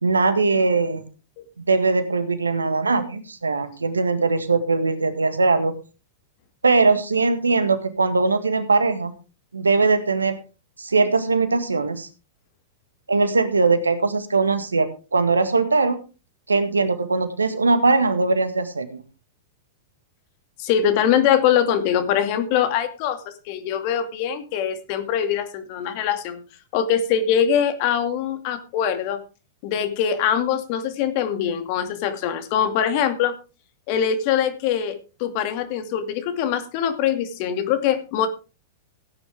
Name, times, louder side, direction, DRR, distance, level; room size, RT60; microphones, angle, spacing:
voice 1, 0.0-1.0 1.6-5.8 6.6-9.1 9.5-10.4 10.8-12.1 13.1-16.0 16.5-19.0, right 3 dB, 90° right, 11 dB, 1.7 m, -20 dB
voice 2, 20.6-23.2 23.5-26.4 26.7-29.2 29.6-33.3 33.9-38.3, left 9 dB, 50° left, 8 dB, 2.3 m, -23 dB
16.5 x 9.7 x 3.5 m, 0.32 s
hypercardioid pair, 100°, 0 cm